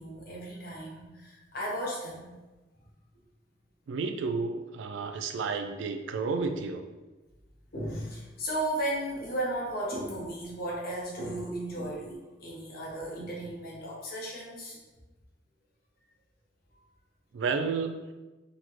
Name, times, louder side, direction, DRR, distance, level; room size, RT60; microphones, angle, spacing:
voice 1, 0.0-2.3 7.7-14.8, right 1 dB, 55° left, -4 dB, 0.9 m, -35 dB
voice 2, 3.9-6.8 17.3-18.0, right 4 dB, 85° right, 6 dB, 0.3 m, -31 dB
3.8 x 2.1 x 3.0 m, 1.1 s
head